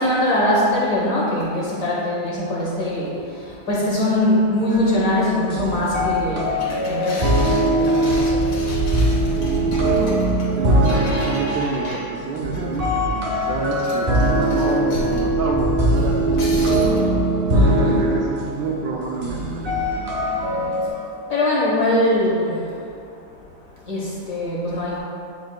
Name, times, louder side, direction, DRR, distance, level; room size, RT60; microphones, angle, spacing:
voice 1, 0.0-3.1 3.7-6.6 6.9-7.4 7.8-8.2 17.5-17.9 20.9-21.0 21.3-22.6 23.9-25.0, left 1 dB, 50° left, -5 dB, 1.3 m, -21 dB
sound 1, 4.7-20.9, right 1 dB, 45° right, 0.7 m, -21 dB
sound 2, 6.6-12.9 13.4-15.2 15.9-17.0, left 2 dB, 80° left, 2.4 m, -36 dB
voice 2, 10.5-16.9 17.6-19.6, right 3 dB, 70° right, -2 dB, 1.1 m, -29 dB
9.3 x 5.1 x 2.2 m, 2.5 s
omnidirectional pair, 2.3 m